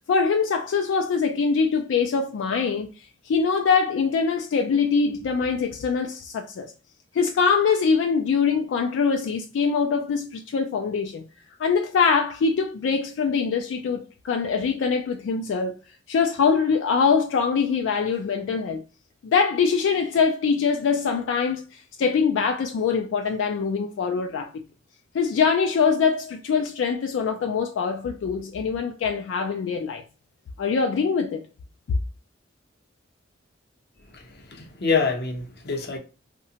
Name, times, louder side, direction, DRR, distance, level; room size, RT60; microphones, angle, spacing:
voice 1, 0.1-2.9 3.3-6.7 7.1-11.2 11.6-15.8 16.1-18.8 19.2-24.6 25.1-30.0 30.6-31.4, left 5 dB, 85° left, 0.3 m, -23 dB
voice 2, 34.5-36.0, left 4 dB, 60° left, 0.6 m, -25 dB
2.8 x 2.1 x 2.7 m
head